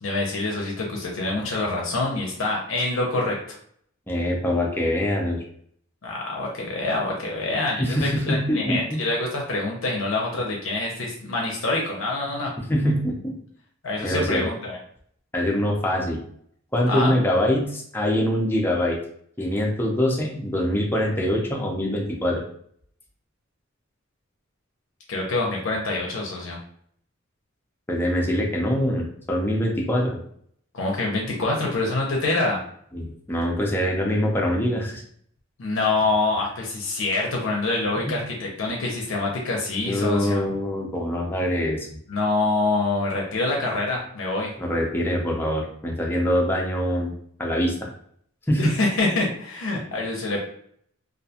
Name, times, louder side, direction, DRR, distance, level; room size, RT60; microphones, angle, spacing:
voice 1, 0.0-3.6 6.0-12.5 13.8-14.8 16.9-17.1 25.1-26.6 30.7-32.6 35.6-40.5 42.1-44.5 48.6-50.4, left 2 dB, 65° left, -2 dB, 0.5 m, -26 dB
voice 2, 4.1-5.4 7.8-9.1 12.7-13.3 14.0-14.5 15.3-16.2 16.7-19.0 19.4-22.4 27.9-30.2 32.9-35.0 38.1-38.2 39.7-41.9 44.6-47.1 47.4-47.9 48.5-48.8, equal, 10° left, -1 dB, 0.4 m, -24 dB
2.4 x 2.2 x 2.7 m, 0.63 s
head